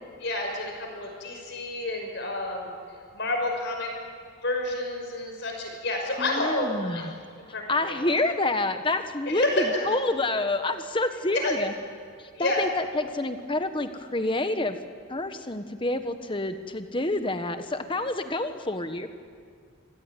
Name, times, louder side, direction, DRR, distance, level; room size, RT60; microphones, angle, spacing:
voice 1, 0.2-2.7 3.1-3.9 4.4-7.0 7.5-8.0 9.3-9.9 11.4-11.6 12.3-12.6, left 2 dB, 55° left, 2 dB, 5.7 m, -29 dB
voice 2, 6.2-7.1 7.7-11.7 12.2-14.8 15.1-19.1, left 2 dB, 25° left, 8 dB, 1.3 m, -28 dB
25.5 x 17.0 x 9.2 m, 2.2 s
head